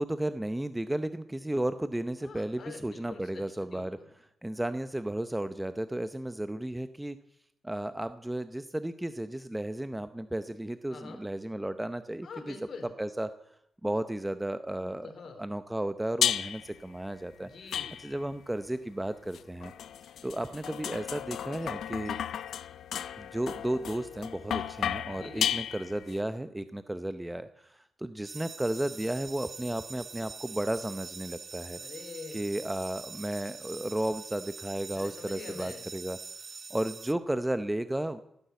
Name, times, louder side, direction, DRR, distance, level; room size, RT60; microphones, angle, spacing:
voice 1, 0.0-7.2 7.6-12.6 13.0-15.1 15.4-17.5 18.0-19.7 20.2-22.2 23.2-31.8 32.3-36.2 36.7-38.2, right 1 dB, 10° right, 11 dB, 0.7 m, -34 dB
voice 2, 2.2-4.1 10.9-11.2 12.2-12.9 14.8-15.4 17.4-17.9 25.1-25.6 31.8-32.4 34.9-35.9, left 4 dB, 60° left, 4 dB, 3.4 m, -45 dB
sound 1, 16.2-16.8 17.7-18.4 19.3-26.2, left 9 dB, 85° left, 0.7 m, -34 dB
sound 2, 28.2-37.1, right 5 dB, 45° right, 0.8 m, -44 dB
16.5 x 10.0 x 8.1 m, 0.78 s
cardioid pair, 105°, 0 cm